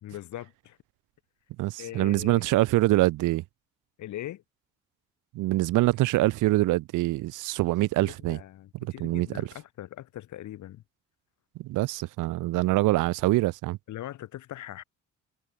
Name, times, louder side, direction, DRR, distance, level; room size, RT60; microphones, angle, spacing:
voice 1, 0.0-0.8 1.8-2.4 4.0-4.4 8.0-10.8 13.9-14.8, left 13 dB, 75° left, 1.7 m, -40 dB
voice 2, 1.6-3.4 5.3-8.4 8.8-9.5 11.6-13.8, right 18 dB, 85° right, 0.7 m, -25 dB
cardioid pair, 90°, 30 cm